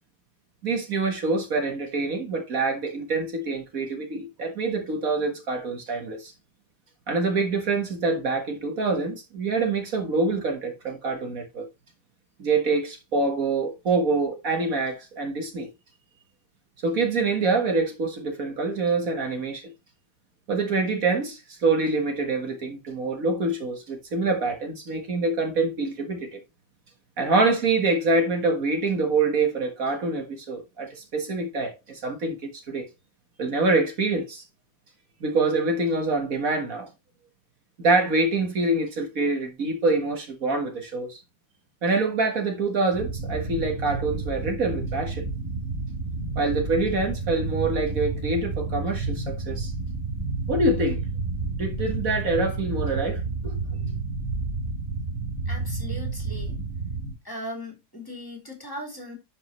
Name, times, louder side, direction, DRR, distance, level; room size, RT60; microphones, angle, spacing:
voice 1, 0.6-6.3 7.1-11.7 12.4-15.7 16.8-19.7 20.5-26.4 27.2-32.9 33.4-34.4 35.2-36.9 37.8-41.2 41.8-45.2 46.4-49.7 50.5-51.0 51.6-53.6, right 3 dB, 60° right, 2.0 m, -25 dB
sound 1, 42.9-57.1, right 3 dB, 20° right, 3.0 m, -30 dB
voice 2, 55.4-56.6 57.2-59.2, equal, 15° left, 3.2 m, -38 dB
11.5 x 5.5 x 3.1 m
omnidirectional pair, 1.6 m